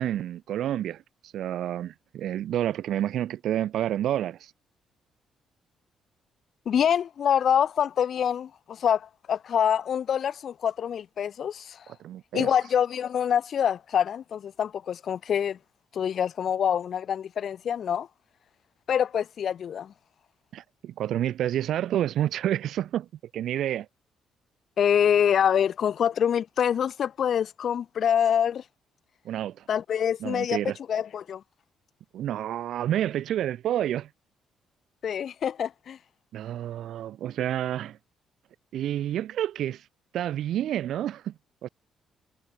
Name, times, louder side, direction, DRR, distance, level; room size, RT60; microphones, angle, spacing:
voice 1, 0.0-4.5 11.9-12.5 20.5-23.1 23.3-23.9 29.2-29.7 30.2-30.8 32.1-34.1 36.3-38.0 38.7-39.9 40.1-41.3 41.6-41.7, right 11 dB, 75° right, 7.9 m, -29 dB
voice 2, 6.6-11.8 12.3-15.6 15.9-18.1 18.9-19.9 24.8-28.6 29.7-30.6 30.9-31.4 35.0-36.0, left 8 dB, 60° left, 6.3 m, -25 dB
cardioid pair, 90°, 0 cm